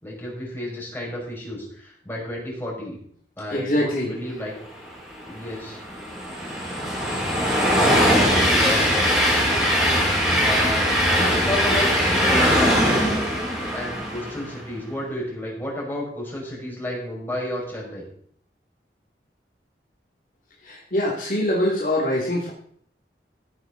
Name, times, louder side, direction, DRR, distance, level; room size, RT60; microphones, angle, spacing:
voice 1, 0.0-3.0 3.4-4.5 5.3-5.8 7.7-9.6 10.4-10.9 11.2-13.0 13.7-18.0, left 1 dB, 10° left, -4 dB, 5.7 m, -31 dB
voice 2, 3.5-4.1 20.6-22.5, left 1 dB, 50° left, -3 dB, 2.6 m, -23 dB
Train, 5.2-14.6, equal, 5° right, 4.4 m, -21 dB
15.5 x 10.0 x 4.0 m, 0.62 s
head